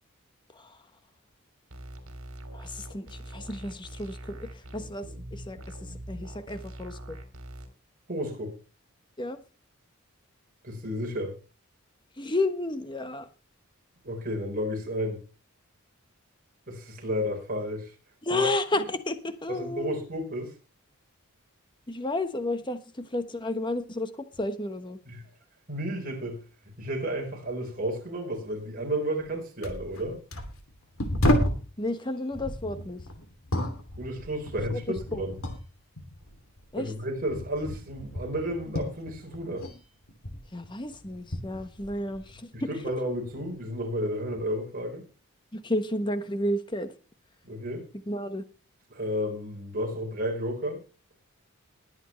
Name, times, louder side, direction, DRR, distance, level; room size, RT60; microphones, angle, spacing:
sound 1, 1.7-7.7, right 1 dB, 80° right, 2.9 m, -42 dB
voice 1, 2.5-7.2 9.2-9.4 12.2-13.3 18.2-20.0 21.9-25.0 31.8-33.0 34.9-35.2 36.7-36.9 40.5-42.7 45.5-46.9 48.1-48.4, left 1 dB, 20° left, 9 dB, 1.2 m, -32 dB
voice 2, 8.1-8.5 10.6-11.3 14.0-15.2 16.7-17.9 18.3-18.5 19.5-20.5 25.1-25.2 25.7-26.4 26.8-30.2 34.0-35.4 36.8-39.7 42.5-45.1 47.4-47.9 48.9-50.8, equal, 40° right, 1 dB, 4.4 m, -32 dB
sound 2, 29.2-29.3 29.6-31.7 32.3-35.7 36.0-39.8 40.0-42.4 42.8-43.5 44.3-44.5, left 1 dB, 70° left, 2.8 m, -32 dB
21.0 x 8.1 x 3.2 m, 0.32 s
head